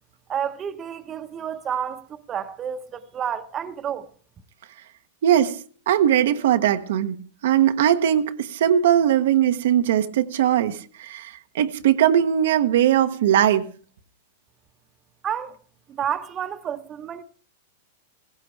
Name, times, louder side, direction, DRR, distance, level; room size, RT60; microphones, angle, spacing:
voice 1, 0.3-4.1 15.2-15.5 15.9-17.2, right 8 dB, 25° right, 1.0 m, -30 dB
voice 2, 5.2-5.6 5.9-7.2 7.4-13.7, right 10 dB, 70° right, 1.0 m, -20 dB
17.0 x 15.5 x 3.4 m
hypercardioid pair, 125°, 0 cm